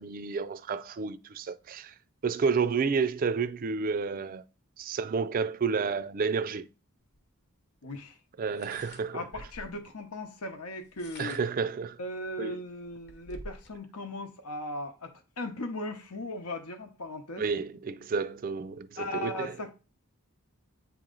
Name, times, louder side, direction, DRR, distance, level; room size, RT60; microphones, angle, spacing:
voice 1, 0.0-1.9 2.2-4.4 4.8-6.7 8.4-9.2 11.2-12.0 12.4-12.6 17.4-19.5, right 5 dB, 40° right, 0.3 m, -30 dB
sound 1, 7.1-7.2 8.5-9.8 10.8-11.7 12.3-12.4 12.7-13.8, left 1 dB, 50° left, 1.0 m, -48 dB
voice 2, 7.8-8.2 8.5-8.7 9.1-11.4 12.0-17.4 19.0-19.7, left 1 dB, 85° left, 0.9 m, -38 dB
8.4 x 3.0 x 3.8 m
head